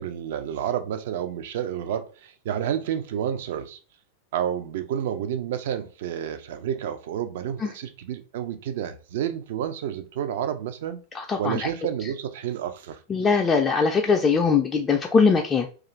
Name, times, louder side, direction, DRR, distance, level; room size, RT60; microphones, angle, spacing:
voice 1, 0.0-3.8 4.3-11.0 11.4-13.0, right 9 dB, 55° right, 0.4 m, -30 dB
voice 2, 11.1-11.7 13.1-15.7, left 5 dB, 20° left, 0.3 m, -21 dB
2.4 x 2.4 x 3.0 m
figure-of-eight pair, 90°, 0 cm